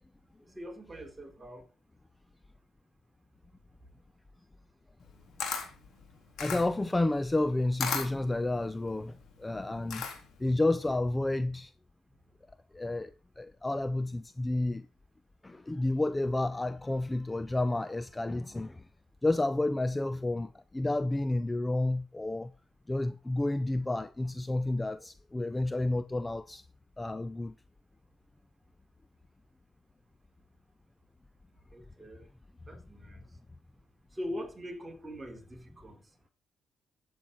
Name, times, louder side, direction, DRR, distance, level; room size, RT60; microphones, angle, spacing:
voice 1, 0.6-1.6 31.7-32.2 32.7-33.2 34.1-36.0, equal, 15° right, 4.1 m, -42 dB
Camera, 5.0-10.5, left 6 dB, 75° left, 4.0 m, -37 dB
voice 2, 6.4-10.1 10.4-11.7 12.7-14.9 15.4-18.8 19.2-22.5 22.9-26.6 27.0-27.5, left 2 dB, 15° left, 0.6 m, -30 dB
13.0 x 8.8 x 4.1 m
cardioid pair, 90°, 0 cm